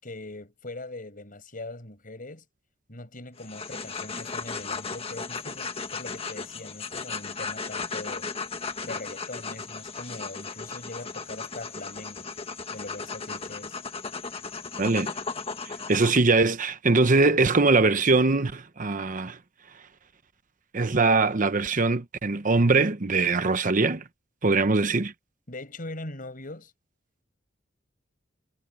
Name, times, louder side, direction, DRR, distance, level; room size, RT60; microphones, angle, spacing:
voice 1, 0.0-2.4 2.9-8.3 8.8-12.3 12.7-13.8 25.5-26.7, left 2 dB, 45° left, 6.2 m, -41 dB
sound 1, 3.4-16.2, left 4 dB, 30° left, 1.5 m, -36 dB
voice 2, 14.8-15.1 15.7-19.4 20.7-24.0 24.4-25.1, right 3 dB, 45° right, 0.9 m, -22 dB
head